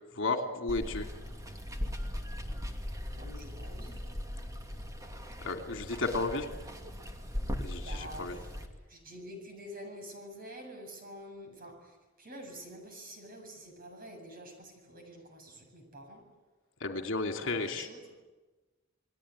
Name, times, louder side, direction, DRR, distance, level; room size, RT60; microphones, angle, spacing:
voice 1, 0.2-1.1 5.4-6.5 7.6-8.4 16.8-17.9, left 3 dB, 65° left, 5 dB, 2.9 m, -33 dB
Water, 0.7-8.7, equal, 15° right, 2.7 m, -39 dB
voice 2, 3.2-4.0 7.8-8.6 8.9-16.3 17.4-18.1, equal, 45° right, 4 dB, 7.6 m, -47 dB
29.0 x 20.5 x 9.9 m, 1.2 s
head